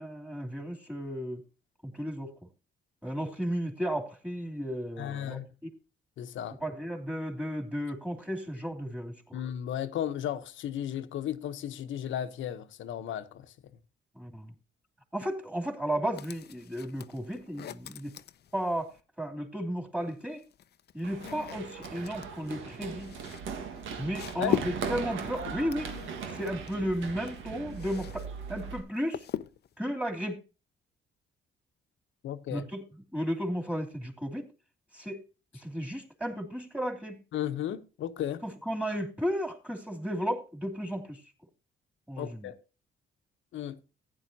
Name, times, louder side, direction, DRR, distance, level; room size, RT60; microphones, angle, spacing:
voice 1, 0.0-1.4 1.8-2.3 3.0-5.4 6.6-9.4 14.1-14.5 15.1-18.2 18.5-18.9 19.2-20.4 20.9-23.2 24.0-25.9 26.3-29.2 29.8-30.4 32.5-32.8 33.1-34.5 34.9-35.3 35.5-37.2 38.4-41.2 42.1-42.5, equal, 5° right, 3.0 m, -34 dB
voice 2, 5.0-5.5 6.2-6.6 9.3-13.5 24.4-24.6 32.2-32.7 37.3-38.4 42.2-42.6 43.5-43.8, left 10 dB, 75° left, 1.0 m, -34 dB
sound 1, 16.1-19.0 20.0-28.3 28.5-29.8, left 10 dB, 55° left, 0.6 m, -40 dB
Run, 21.0-28.8, right 6 dB, 80° right, 1.6 m, -39 dB
15.0 x 9.9 x 2.8 m
cardioid pair, 90°, 20 cm